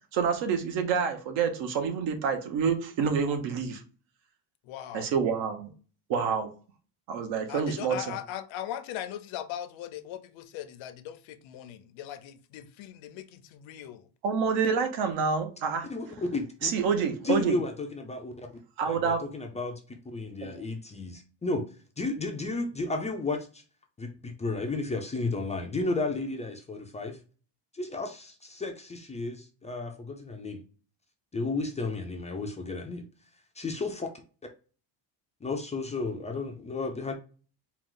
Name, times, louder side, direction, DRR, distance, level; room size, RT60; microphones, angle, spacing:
voice 1, 0.1-3.8 4.9-5.7 6.1-6.5 7.1-8.2 14.2-15.9 16.6-17.6 18.8-19.2 20.4-20.5, right 6 dB, 70° right, 1.1 m, -27 dB
voice 2, 4.6-5.1 7.5-14.1, left 11 dB, 90° left, 0.7 m, -39 dB
voice 3, 15.9-16.7 17.2-18.5 18.9-19.8 20.1-21.6 22.0-23.6 24.0-27.2 27.7-30.6 31.3-33.1 33.6-34.1 35.4-37.1, left 3 dB, 15° left, 0.3 m, -33 dB
4.6 x 2.3 x 3.7 m
cardioid pair, 160°, 46 cm